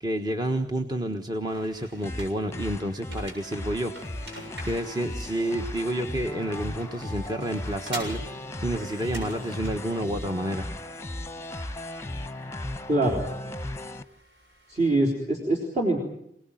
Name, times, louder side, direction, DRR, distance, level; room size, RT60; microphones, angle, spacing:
voice 1, 0.0-4.1 4.7-10.7, right 1 dB, 25° right, 5 dB, 1.3 m, -29 dB
sound 1, 1.5-15.1, right 1 dB, 75° right, 7.1 m, -46 dB
sound 2, 2.0-14.0, left 1 dB, 15° left, 1.0 m, -36 dB
voice 2, 12.9-13.2 14.7-16.0, right 2 dB, 40° right, -1 dB, 3.8 m, -24 dB
26.0 x 18.5 x 9.1 m, 0.76 s
head